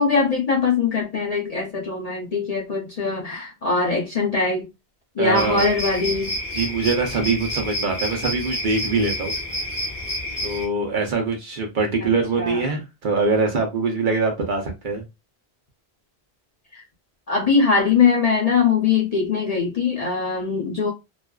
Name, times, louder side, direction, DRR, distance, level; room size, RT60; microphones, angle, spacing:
voice 1, 0.0-4.7 5.2-6.4 12.0-12.6 16.7-16.8 17.3-20.9, left 5 dB, 45° left, 0.6 m, -21 dB
voice 2, 5.2-5.7 6.5-9.3 10.4-15.0, right 4 dB, 55° right, 0.8 m, -23 dB
sound 1, 5.4-10.7, equal, 15° right, 0.7 m, -29 dB
2.4 x 2.2 x 2.2 m
omnidirectional pair, 1.1 m